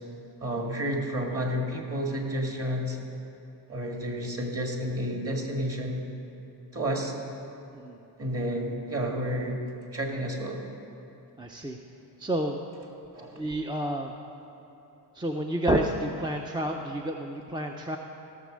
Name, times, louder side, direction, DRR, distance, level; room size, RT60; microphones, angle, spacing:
voice 1, 0.4-3.0 3.7-6.1 6.7-7.1 8.2-9.6 9.9-10.6 13.1-13.4, equal, 35° right, 1 dB, 2.0 m, -30 dB
voice 2, 11.4-11.8 12.2-12.6 13.3-14.1 15.1-18.0, right 1 dB, 10° right, 2 dB, 0.6 m, -29 dB
16.0 x 6.5 x 6.3 m, 2.9 s
cardioid pair, 100°, 42 cm